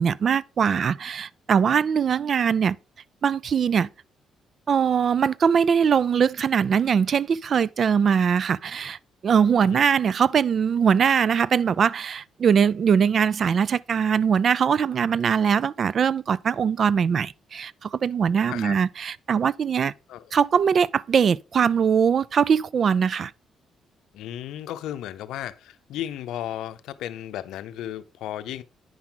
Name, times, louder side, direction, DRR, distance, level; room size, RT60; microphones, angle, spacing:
voice 1, 0.0-2.8 3.2-3.9 4.7-9.0 9.2-19.9 20.3-23.3, right 7 dB, 50° right, 0.3 m, -21 dB
voice 2, 24.1-28.6, left 12 dB, 85° left, 0.6 m, -34 dB
9.6 x 5.9 x 3.8 m
cardioid pair, 90°, 0 cm